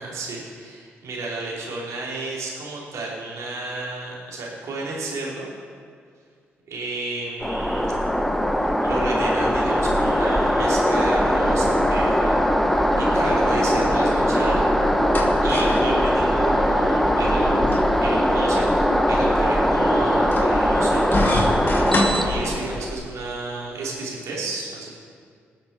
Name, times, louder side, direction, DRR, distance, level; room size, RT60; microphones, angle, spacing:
voice 1, 0.0-5.5 6.7-7.9 8.5-14.7 15.4-18.7 19.1-21.9 22.2-24.9, right 3 dB, 70° right, -4 dB, 3.3 m, -32 dB
sound 1, 7.4-22.9, equal, 5° left, 1.0 m, -20 dB
sound 2, 14.7-23.0, left 1 dB, 40° left, 2.5 m, -29 dB
20.0 x 7.3 x 4.4 m, 2.1 s
hypercardioid pair, 45°, 5 cm